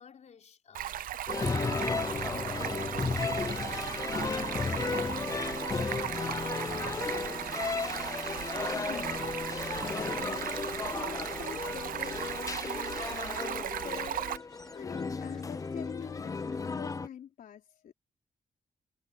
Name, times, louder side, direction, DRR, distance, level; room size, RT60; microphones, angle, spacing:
voice 1, 0.0-2.9 3.2-8.4, left 7 dB, 55° left, 4.8 m, -53 dB
Stream, 0.7-14.4, right 11 dB, 80° right, 0.7 m, -37 dB
sound 1, 1.3-17.1, left 4 dB, 25° left, 0.5 m, -34 dB
sound 2, 2.1-17.0, left 1 dB, 5° left, 3.8 m, -62 dB
voice 2, 8.7-17.9, left 9 dB, 80° left, 3.9 m, -46 dB
wide cardioid pair, 135°, 14 cm